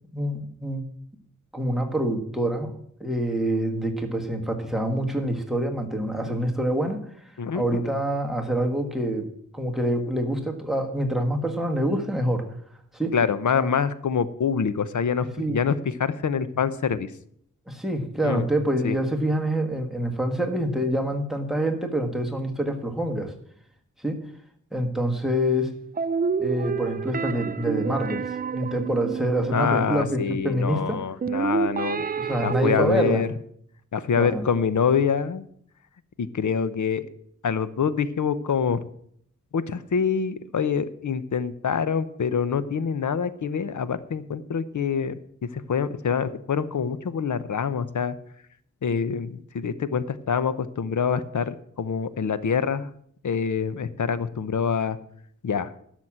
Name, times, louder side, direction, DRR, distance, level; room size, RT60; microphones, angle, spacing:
voice 1, 0.1-0.8 1.5-2.7 3.0-7.0 7.5-9.3 9.5-12.5 12.9-13.1 13.6-13.7 15.4-15.6 17.7-23.3 24.0-24.2 24.7-25.7 26.4-31.0 32.2-33.3 34.2-34.4, right 1 dB, ahead, 5 dB, 1.6 m, -26 dB
voice 2, 7.4-7.8 13.1-17.1 18.2-18.5 18.8-19.0 29.5-32.0 32.4-33.3 33.9-35.5 36.2-37.1 37.4-38.8 39.5-45.2 45.5-48.2 48.8-52.9 53.2-55.0 55.4-55.7, left 6 dB, 70° left, 14 dB, 0.8 m, -25 dB
sound 1, 26.0-30.2 31.2-33.1, right 6 dB, 30° right, 0.4 m, -28 dB
12.0 x 6.2 x 7.4 m, 0.66 s
wide cardioid pair, 105°, 31 cm